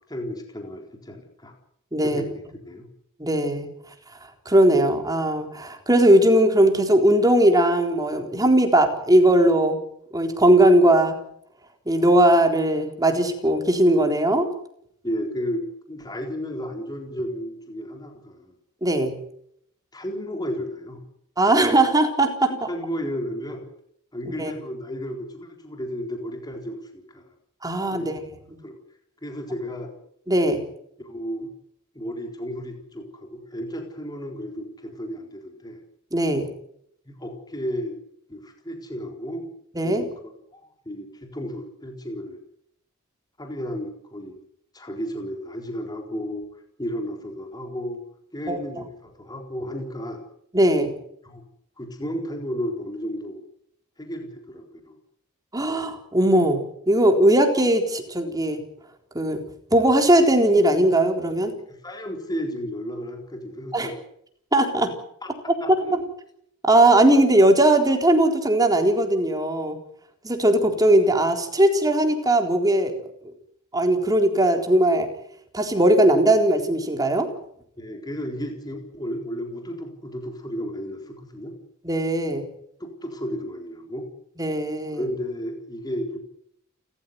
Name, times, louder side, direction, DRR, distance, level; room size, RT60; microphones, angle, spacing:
voice 1, 0.1-1.5 2.0-2.9 15.0-18.5 19.9-21.0 21.5-21.6 22.5-23.7 24.1-27.3 27.9-28.2 28.6-28.8 29.2-29.9 31.0-31.5 31.9-35.8 37.1-38.0 38.3-39.4 39.8-40.0 40.5-42.4 43.4-44.4 44.7-46.4 46.8-48.0 48.3-50.2 51.2-51.4 51.8-53.4 54.0-54.9 61.7-64.0 65.2-65.3 65.6-65.9 77.8-81.5 82.8-84.0 84.9-86.2, equal, 20° left, 3 dB, 4.1 m, -33 dB
voice 2, 1.9-2.2 3.2-3.7 4.5-9.8 10.1-11.2 11.9-14.5 18.8-19.1 21.4-22.5 24.4-24.5 27.6-28.1 30.3-30.6 36.1-36.5 39.8-40.0 48.5-48.6 50.5-50.9 55.5-56.6 56.9-58.6 59.1-59.4 59.7-61.5 63.7-63.9 64.5-64.9 65.9-66.0 66.7-69.8 70.2-72.9 73.7-75.1 75.5-77.3 81.8-82.4 84.4-85.1, right 1 dB, 20° right, 4 dB, 4.0 m, -19 dB
29.5 x 14.5 x 9.6 m, 0.73 s
head